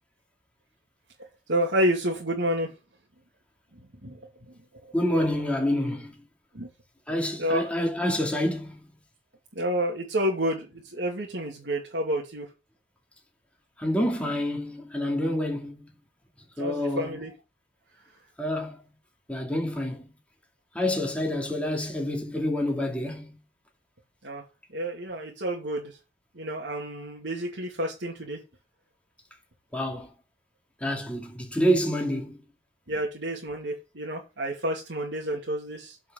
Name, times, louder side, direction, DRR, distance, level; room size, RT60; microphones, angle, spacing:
voice 1, 1.5-2.7 4.0-4.2 6.5-6.7 7.4-7.6 9.5-12.5 16.6-17.3 24.2-24.4 24.7-25.9 26.4-28.4 32.9-35.9, equal, 90° right, 2.6 m, -29 dB
voice 2, 4.9-6.2 7.1-8.8 13.8-15.9 16.6-17.2 18.4-18.8 19.3-20.1 20.7-23.4 29.7-30.1 30.8-32.4, equal, 5° left, 2.5 m, -27 dB
8.5 x 4.8 x 6.6 m
head